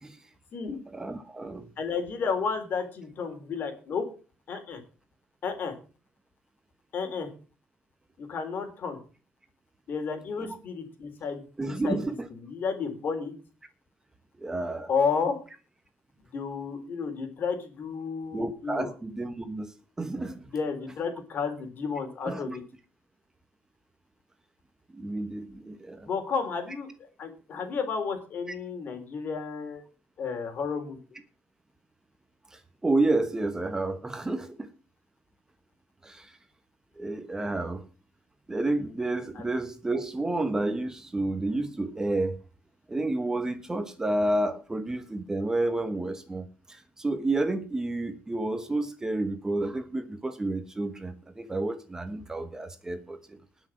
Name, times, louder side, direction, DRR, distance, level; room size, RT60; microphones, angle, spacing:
voice 1, 0.9-1.7 10.4-10.5 11.6-12.3 14.4-14.9 18.3-20.4 22.3-22.6 24.9-26.1 32.5-34.7 36.0-36.4 37.0-37.8 38.5-42.4 42.9-53.4, right 2 dB, 15° right, 8 dB, 1.2 m, -30 dB
voice 2, 1.8-4.1 4.5-4.8 5.4-5.8 6.9-7.3 8.2-9.0 9.9-12.0 12.3-13.3 14.9-15.4 16.3-18.9 20.5-22.6 26.0-26.9 27.2-29.8 30.2-31.0 39.4-39.5, left 5 dB, 50° left, 7 dB, 3.5 m, -32 dB
19.0 x 6.3 x 6.0 m, 0.37 s
cardioid pair, 135°, 4 cm